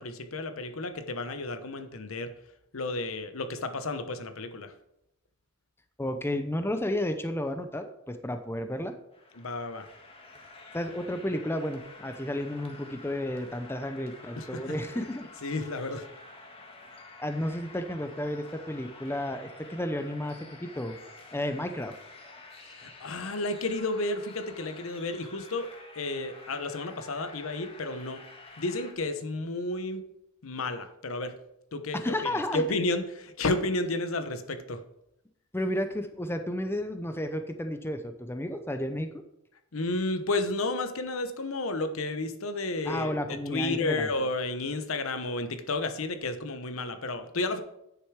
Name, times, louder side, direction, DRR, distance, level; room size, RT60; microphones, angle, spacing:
voice 1, 0.0-2.3 2.7-4.7 9.4-9.9 14.4-15.0 15.4-16.1 22.7-25.7 25.9-28.2 28.6-30.0 30.4-31.4 31.7-34.8 39.7-47.6, left 2 dB, 80° left, 9 dB, 0.9 m, -32 dB
voice 2, 6.0-8.9 10.7-15.2 17.2-21.0 21.3-22.0 31.9-32.8 35.5-39.1 42.9-44.1, left 1 dB, 10° left, 8 dB, 0.6 m, -32 dB
sound 1, 9.1-28.9, left 2 dB, 30° left, 1.6 m, -49 dB
9.5 x 6.9 x 4.7 m, 0.82 s
head